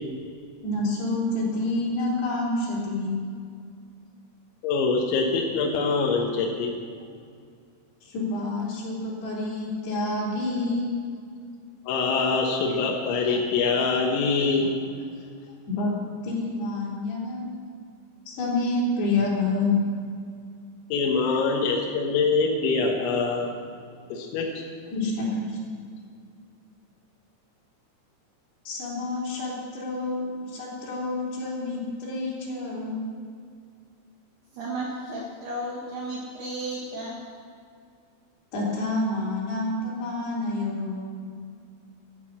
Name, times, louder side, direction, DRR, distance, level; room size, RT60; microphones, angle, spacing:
voice 1, 0.6-3.3 8.0-11.0 15.7-16.0 16.2-17.5 18.3-19.9 24.9-25.8 28.7-33.0 38.5-41.2, left 2 dB, 60° left, -5 dB, 5.6 m, -28 dB
voice 2, 4.6-6.7 11.9-14.8 20.9-23.5 24.1-24.5, left 4 dB, 75° left, -1 dB, 3.6 m, -24 dB
voice 3, 34.5-37.2, right 1 dB, 65° right, -3 dB, 3.2 m, -33 dB
15.0 x 12.0 x 6.1 m, 2.2 s
omnidirectional pair, 5.6 m